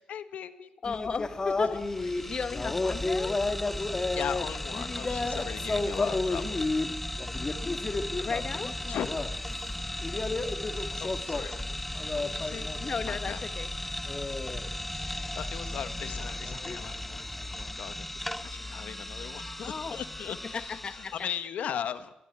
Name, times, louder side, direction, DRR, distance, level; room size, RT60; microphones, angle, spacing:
voice 1, 0.0-0.8 2.2-2.3 3.8-6.6 8.9-9.1 10.7-11.8 12.1-12.7 13.0-13.4 14.6-22.1, left 9 dB, 70° left, 12 dB, 1.5 m, -39 dB
voice 2, 0.8-1.8 2.3-3.4 8.2-8.8 12.8-13.7 19.6-20.0 20.4-21.1, left 5 dB, 40° left, 11 dB, 1.4 m, -35 dB
sound 1, 0.9-13.0 13.2-17.7, left 3 dB, 25° left, 2.4 m, -33 dB
sound 2, 1.7-21.4, left 1 dB, 5° left, 1.2 m, -37 dB
23.0 x 20.0 x 9.6 m, 0.86 s
cardioid pair, 110°, 2 cm